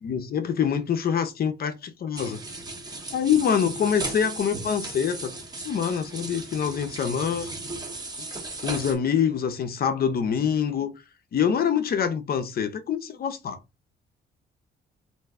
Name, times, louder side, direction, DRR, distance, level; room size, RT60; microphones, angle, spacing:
voice 1, 0.0-2.4 3.1-5.4 5.6-7.5 8.6-10.9 11.3-13.6, left 7 dB, 50° left, 0.6 m, -25 dB
sound 1, 2.2-9.0, right 2 dB, 20° right, 0.8 m, -36 dB
2.6 x 2.2 x 3.5 m
cardioid pair, 90°, 20 cm